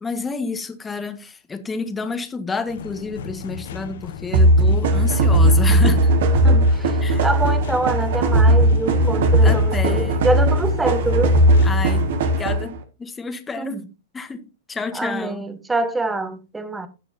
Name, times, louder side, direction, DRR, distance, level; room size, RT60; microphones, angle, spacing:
voice 1, 0.0-6.1 7.0-7.2 9.4-10.3 11.6-13.8 14.1-14.4 14.7-15.4, left 4 dB, 15° left, 1.6 m, -29 dB
sound 1, 2.7-12.1, left 7 dB, 70° left, 1.4 m, -36 dB
sound 2, 4.3-12.8, right 1 dB, 65° right, 2.0 m, -17 dB
voice 2, 6.4-11.4 13.6-13.8 14.9-16.9, right 2 dB, 10° right, 1.4 m, -25 dB
17.0 x 6.7 x 2.8 m
hypercardioid pair, 115°, 0 cm